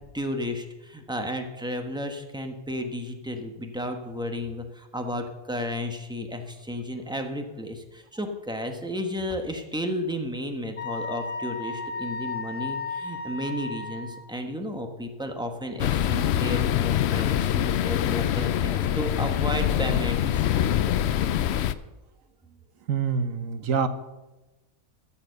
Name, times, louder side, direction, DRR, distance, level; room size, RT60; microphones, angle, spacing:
voice 1, 0.1-20.5, equal, 5° right, 4 dB, 1.1 m, -33 dB
Wind instrument woodwind instrument, 10.8-14.2, left 4 dB, 25° left, 1.0 m, -34 dB
sound 1, 15.8-21.7, left 10 dB, 65° left, 0.7 m, -24 dB
voice 2, 22.9-23.9, right 6 dB, 70° right, 11 dB, 1.2 m, -26 dB
13.5 x 7.2 x 6.8 m, 1.1 s
omnidirectional pair, 1.5 m